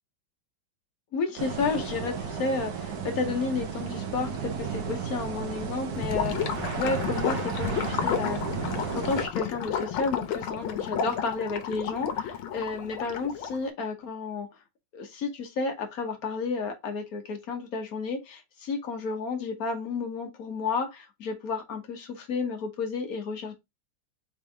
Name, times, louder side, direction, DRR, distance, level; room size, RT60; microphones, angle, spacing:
voice 1, 1.1-8.4 8.9-14.5 14.9-23.5, left 4 dB, 55° left, 1.3 m, -32 dB
sound 1, 1.4-9.3, right 6 dB, 60° right, 1.2 m, -33 dB
Gurgling / Liquid, 5.9-13.7, left 8 dB, 80° left, 1.6 m, -32 dB
4.4 x 3.3 x 3.4 m
omnidirectional pair, 2.3 m